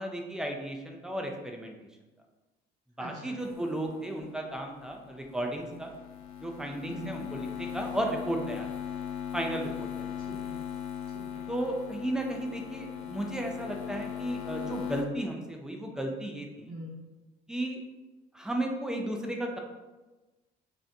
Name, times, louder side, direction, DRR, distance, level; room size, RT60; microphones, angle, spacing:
voice 1, 0.0-1.7 3.0-5.9 6.4-8.7 9.3-10.1 11.5-16.7 17.5-17.8 18.3-19.6, right 1 dB, 5° right, 2 dB, 0.4 m, -34 dB
voice 2, 3.0-3.4 6.8-7.3 10.2-10.7 11.1-11.5 16.6-17.1, right 1 dB, 45° right, -9 dB, 1.0 m, -45 dB
sound 1, 3.4-15.0, left 9 dB, 70° left, 0.5 m, -39 dB
2.6 x 2.5 x 3.3 m, 1.2 s
cardioid pair, 110°, 17 cm